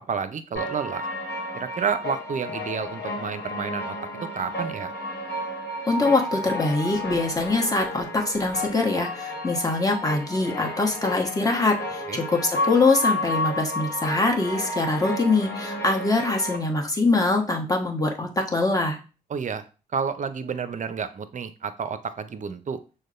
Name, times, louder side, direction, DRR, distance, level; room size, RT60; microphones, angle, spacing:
voice 1, 0.1-1.1 1.5-4.0 4.3-4.9 12.1-12.2 19.3-19.6 19.9-22.8, right 6 dB, 40° right, 12 dB, 0.6 m, -30 dB
sound 1, 0.6-16.6, left 1 dB, 55° left, 1.3 m, -32 dB
voice 2, 5.9-19.0, left 3 dB, 20° left, 1 dB, 1.3 m, -23 dB
6.3 x 2.2 x 2.5 m, 0.35 s
hypercardioid pair, 45°, 20 cm